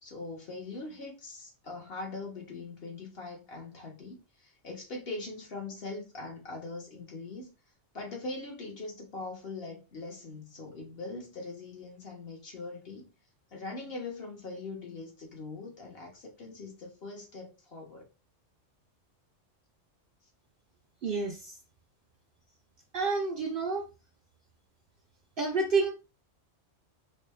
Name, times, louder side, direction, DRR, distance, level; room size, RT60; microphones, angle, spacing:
voice 1, 0.0-7.5 7.9-13.1 13.5-18.0, left 3 dB, 50° left, 1.5 m, -41 dB
voice 2, 21.0-21.5 22.9-23.8 25.4-25.9, right 4 dB, 55° right, 0.7 m, -29 dB
4.0 x 2.3 x 3.2 m
omnidirectional pair, 1.3 m